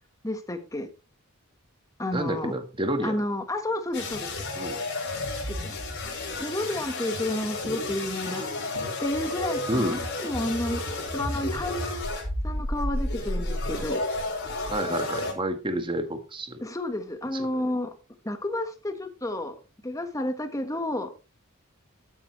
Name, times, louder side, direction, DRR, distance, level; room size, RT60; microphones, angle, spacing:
voice 1, 0.2-0.9 2.0-2.5 3.0-4.3 5.5-5.8 6.4-8.4 9.0-12.0 12.4-14.0 16.6-17.9 18.2-19.5 19.8-21.1, left 1 dB, 15° left, 1.5 m, -31 dB
voice 2, 2.1-3.2 4.5-4.8 9.7-10.1 14.7-16.6 17.3-17.7, right 1 dB, 25° right, 1.5 m, -30 dB
sound 1, 3.9-15.3, left 2 dB, 55° left, 5.4 m, -31 dB
13.0 x 8.9 x 3.2 m
head